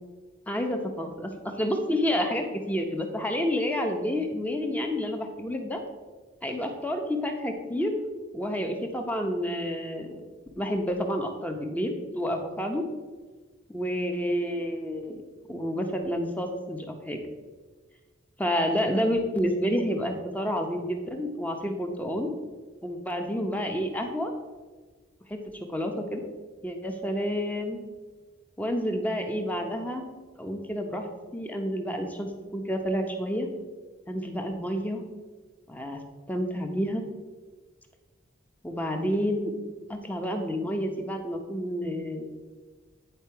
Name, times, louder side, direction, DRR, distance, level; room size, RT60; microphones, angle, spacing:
voice 1, 0.5-5.8 6.4-7.9 8.3-10.2 10.6-12.8 13.7-15.2 15.5-17.2 18.4-22.4 22.8-24.3 25.3-26.3 26.6-27.8 28.6-30.0 30.4-31.1 31.3-33.5 34.1-35.0 35.7-36.0 36.3-37.0 38.6-39.5 39.9-42.3, equal, 10° left, 4 dB, 0.7 m, -29 dB
9.3 x 4.6 x 4.6 m, 1.4 s
head